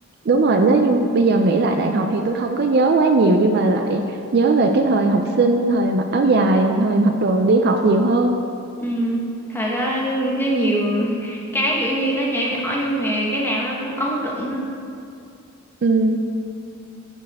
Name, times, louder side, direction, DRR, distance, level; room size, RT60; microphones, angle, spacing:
voice 1, 0.3-4.0 4.3-8.4 15.8-16.2, right 2 dB, 50° right, 5 dB, 0.4 m, -18 dB
voice 2, 8.8-9.2 9.5-14.6, equal, 10° left, -3 dB, 1.0 m, -23 dB
11.0 x 4.5 x 3.5 m, 2.5 s
head